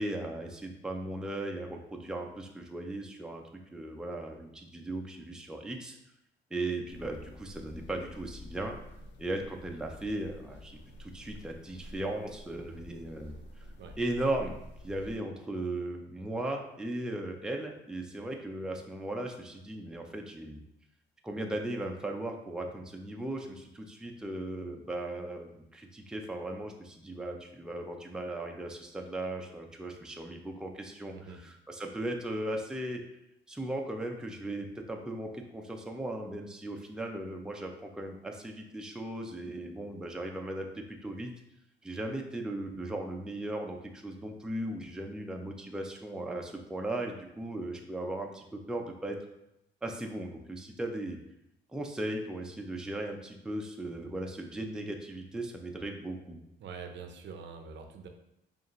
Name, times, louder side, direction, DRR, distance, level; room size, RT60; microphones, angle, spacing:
voice 1, 0.0-6.0 6.5-8.8 9.2-13.7 14.0-14.5 14.8-20.6 21.2-33.0 33.5-41.3 41.8-49.2 49.8-51.2 51.7-56.4, right 1 dB, 5° right, 2 dB, 0.5 m, -37 dB
sound 1, 6.9-15.2, left 1 dB, 65° left, 0.6 m, -49 dB
voice 2, 56.6-58.1, right 5 dB, 65° right, 5 dB, 0.6 m, -45 dB
4.8 x 2.5 x 3.1 m, 0.82 s
cardioid pair, 90°, 20 cm